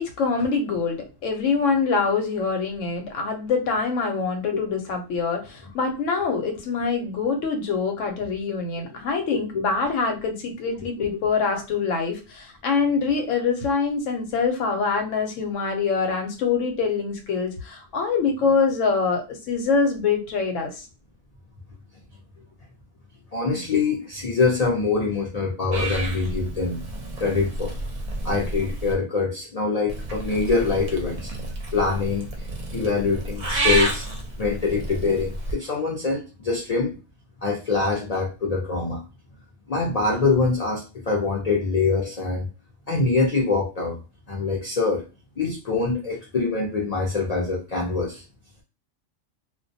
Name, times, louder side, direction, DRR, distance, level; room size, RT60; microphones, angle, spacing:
voice 1, 0.0-20.9, left 5 dB, 90° left, 3 dB, 1.0 m, -24 dB
voice 2, 9.3-9.7 11.0-11.1 23.3-26.8 27.2-27.7 28.2-31.3 31.7-32.3 32.7-34.1 34.4-36.9 37.4-39.0 39.7-42.5 42.9-44.0 44.3-45.0 45.4-48.2, left 4 dB, 55° left, -1 dB, 0.4 m, -24 dB
Purr / Meow, 25.7-28.9 29.9-35.5, right 2 dB, 50° right, 0.6 m, -30 dB
2.2 x 2.2 x 2.6 m, 0.31 s
omnidirectional pair, 1.3 m